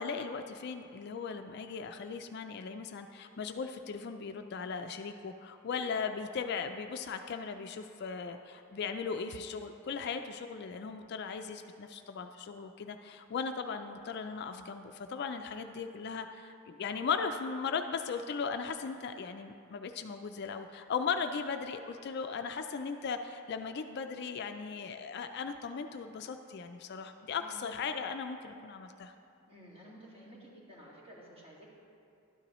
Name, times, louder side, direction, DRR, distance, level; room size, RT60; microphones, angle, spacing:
voice 1, 0.0-29.1, left 5 dB, 50° left, 7 dB, 0.3 m, -37 dB
voice 2, 29.5-31.7, right 1 dB, 25° right, -6 dB, 2.0 m, -53 dB
12.0 x 9.6 x 3.0 m, 2.6 s
head